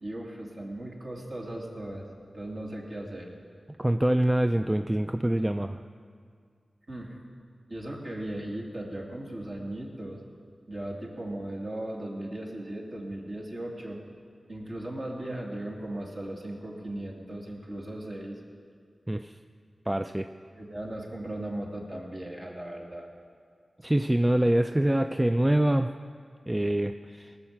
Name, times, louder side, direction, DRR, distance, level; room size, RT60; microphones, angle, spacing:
voice 1, 0.0-2.0 2.3-3.3 6.9-7.2 7.7-10.2 10.7-14.0 14.5-18.3 20.5-23.1, right 1 dB, 50° right, -2 dB, 2.6 m, -37 dB
voice 2, 3.8-5.8 19.1-19.4 19.9-20.3 23.8-25.9 26.5-27.3, right 1 dB, 15° right, 8 dB, 0.4 m, -25 dB
19.0 x 6.6 x 7.2 m, 2.1 s
wide cardioid pair, 60°, 0 cm